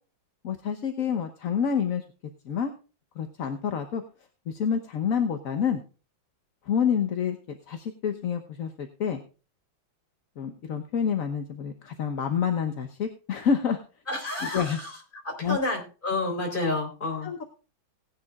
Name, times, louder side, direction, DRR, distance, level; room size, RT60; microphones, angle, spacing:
voice 1, 0.4-2.0 2.4-2.7 3.2-4.0 4.5-5.8 6.7-7.4 7.7-9.2 10.4-13.8 14.4-14.8 15.4-15.6 17.2-17.4, left 7 dB, 50° left, 6 dB, 1.2 m, -28 dB
voice 2, 14.1-15.0 15.2-17.3, left 2 dB, 25° left, 1 dB, 4.0 m, -30 dB
18.5 x 10.5 x 2.4 m, 0.34 s
omnidirectional pair, 2.2 m